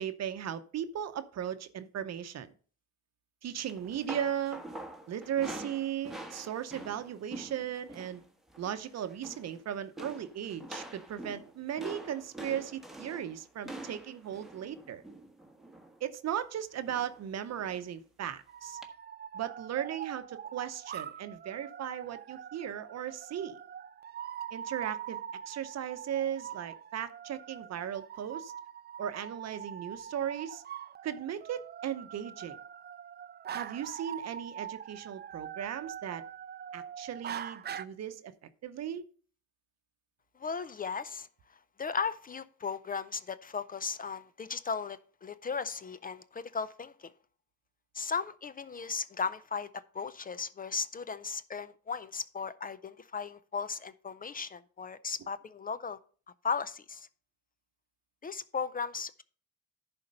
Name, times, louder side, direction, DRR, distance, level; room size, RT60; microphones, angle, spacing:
voice 1, 0.0-2.5 3.4-4.6 5.1-8.2 8.6-15.0 16.0-18.8 19.3-23.6 24.5-28.5 29.0-30.6 31.0-32.6 33.5-36.2 36.7-38.3 38.6-39.0, right 10 dB, 60° right, 0.8 m, -37 dB
sound 1, 3.7-8.2 8.5-8.8 9.1-9.6 10.0-16.0 16.8-17.2 17.6-17.7 18.8-18.9, right 1 dB, ahead, 1.3 m, -45 dB
sound 2, 18.5-37.9, right 9 dB, 35° right, 0.4 m, -43 dB
voice 2, 40.4-41.3 41.8-47.1 47.9-49.7 49.9-56.0 56.4-57.1 58.2-59.2, left 5 dB, 30° left, 0.5 m, -36 dB
10.5 x 4.3 x 5.3 m
cardioid pair, 90°, 30 cm